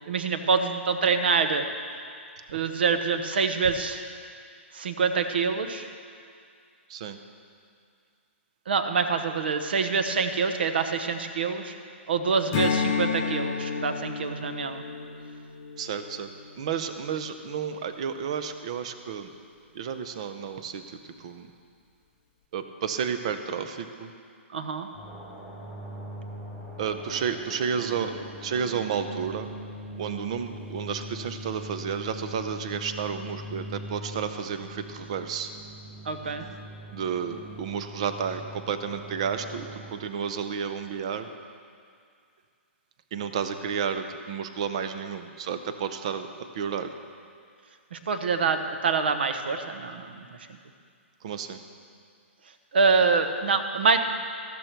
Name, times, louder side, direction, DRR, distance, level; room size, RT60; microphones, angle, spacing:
voice 1, 0.1-1.7 2.5-4.0 4.7-5.9 8.7-11.7 12.1-14.8 24.5-24.9 36.0-36.5 47.9-50.2 52.7-54.0, right 5 dB, 50° right, 8 dB, 1.0 m, -25 dB
Strum, 12.5-17.3, left 6 dB, 25° left, 0.6 m, -31 dB
voice 2, 15.8-16.3 16.6-19.3 19.7-21.5 22.5-24.1 26.8-28.1 28.4-29.5 30.0-35.5 36.9-41.3 43.1-46.9 51.2-51.6, right 7 dB, 30° right, 9 dB, 0.6 m, -31 dB
sound 1, 24.9-39.9, right 1 dB, ahead, 2.0 m, -41 dB
13.5 x 13.0 x 4.6 m, 2.3 s
hypercardioid pair, 180°, 7 cm